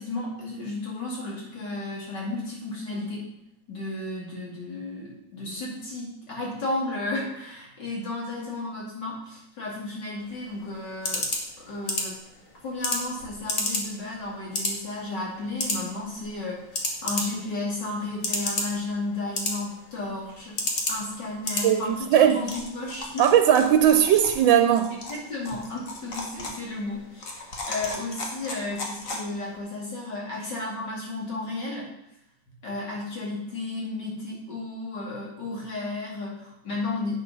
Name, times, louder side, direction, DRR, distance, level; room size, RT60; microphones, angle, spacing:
voice 1, 0.0-3.3 3.7-11.3 11.6-12.1 12.6-23.3 25.1-31.9 32.6-37.2, left 2 dB, 60° left, 3.4 m, -33 dB
sound 1, 10.2-29.6, left 2 dB, 45° left, 1.7 m, -34 dB
voice 2, 21.6-22.4 23.2-24.9, right 9 dB, 80° right, 1.4 m, -19 dB
8.7 x 6.3 x 5.5 m
omnidirectional pair, 2.1 m